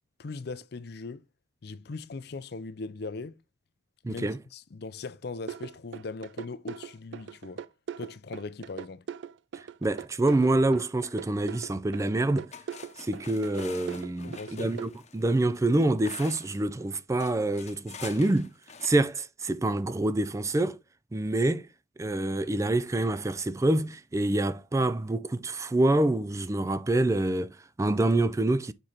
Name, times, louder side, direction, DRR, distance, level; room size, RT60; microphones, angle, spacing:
voice 1, 0.2-1.2 1.6-3.4 4.1-7.7 8.0-9.0 14.2-14.7, left 3 dB, 60° left, 0.6 m, -39 dB
voice 2, 4.0-4.4 9.8-12.5 13.0-18.5 18.8-20.8 21.1-21.7 22.0-28.7, right 2 dB, 15° right, 0.4 m, -26 dB
sound 1, 5.5-14.9, right 7 dB, 80° right, 0.4 m, -40 dB
sound 2, 12.1-12.2 12.5-16.6 17.2-18.9, left 6 dB, 40° left, 0.9 m, -46 dB
6.9 x 4.3 x 3.9 m
head